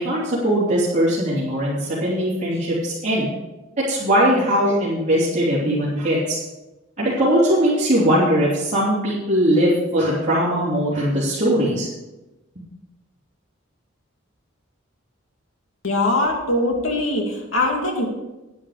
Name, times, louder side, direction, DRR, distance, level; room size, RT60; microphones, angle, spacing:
voice 1, 0.0-3.3 3.9-6.4 7.0-11.9 12.5-12.6, equal, 35° right, -8 dB, 3.2 m, -20 dB
voice 2, 15.8-18.1, left 2 dB, 75° left, 1 dB, 2.6 m, -21 dB
10.5 x 10.5 x 5.0 m, 1.0 s
head